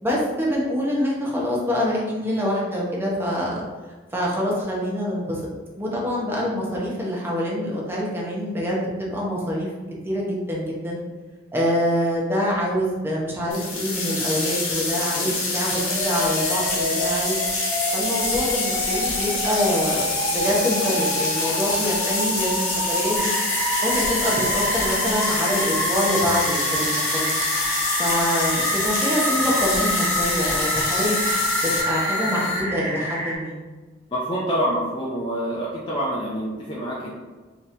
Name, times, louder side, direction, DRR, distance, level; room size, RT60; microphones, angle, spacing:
voice 1, 0.0-3.6 4.1-5.4 5.7-9.7 10.0-11.0 11.5-17.4 17.9-23.3 23.8-27.3 28.0-31.2 31.6-33.6, equal, 10° right, -4 dB, 0.8 m, -25 dB
sound 1, 13.5-31.8, left 3 dB, 90° left, 1.2 m, -26 dB
sound 2, 15.8-32.6, left 1 dB, 65° left, 1.1 m, -28 dB
sound 3, 23.1-33.4, right 1 dB, 45° right, 1.2 m, -30 dB
voice 2, 34.1-37.1, equal, 25° left, -6 dB, 0.5 m, -26 dB
4.2 x 2.9 x 3.3 m, 1.3 s
head